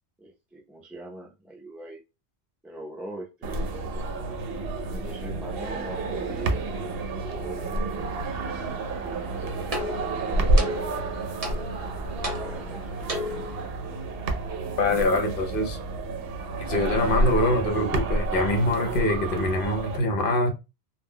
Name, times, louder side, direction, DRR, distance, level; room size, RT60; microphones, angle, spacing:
voice 1, 0.2-2.0 2.6-3.6 4.8-6.7 7.2-7.8 9.6-11.0 11.4-11.7 12.0-12.9, right 1 dB, ahead, 0.3 m, -42 dB
sound 1, 3.4-20.0, right 2 dB, 70° right, 0.7 m, -29 dB
sound 2, 9.1-13.7, left 1 dB, 35° right, 0.8 m, -35 dB
voice 2, 14.8-15.8 16.7-20.5, left 1 dB, 60° left, 0.8 m, -24 dB
2.2 x 2.1 x 3.5 m
omnidirectional pair, 1.1 m